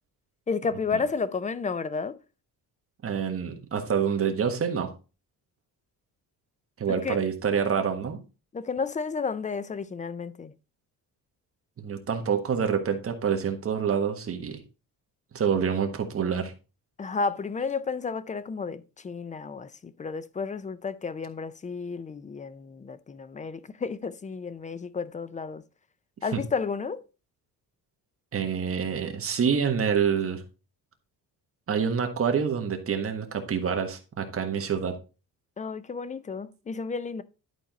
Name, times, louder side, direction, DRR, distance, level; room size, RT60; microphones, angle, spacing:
voice 1, 0.5-2.2 7.0-7.2 8.5-10.5 17.0-25.6 26.2-27.0 35.6-37.2, left 5 dB, 20° left, 0.4 m, -32 dB
voice 2, 3.0-4.9 6.8-8.2 11.8-14.6 15.3-16.5 26.3-26.4 28.3-30.4 31.7-35.0, right 7 dB, 40° right, 1.4 m, -27 dB
11.0 x 4.5 x 3.9 m
cardioid pair, 135°, 37 cm